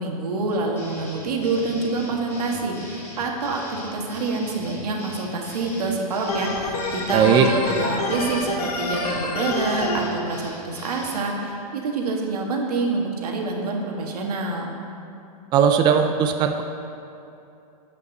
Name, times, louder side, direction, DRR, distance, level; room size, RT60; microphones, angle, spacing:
voice 1, 0.0-14.7, right 3 dB, 85° right, 0 dB, 1.6 m, -26 dB
sound 1, 0.8-11.3, equal, 15° left, 2.1 m, -41 dB
Organ, 6.3-10.0, left 3 dB, 90° left, 1.5 m, -27 dB
voice 2, 7.1-7.5 15.5-16.6, right 8 dB, 25° right, 5 dB, 0.4 m, -18 dB
9.5 x 5.4 x 6.5 m, 2.7 s
supercardioid pair, 140°, 19 cm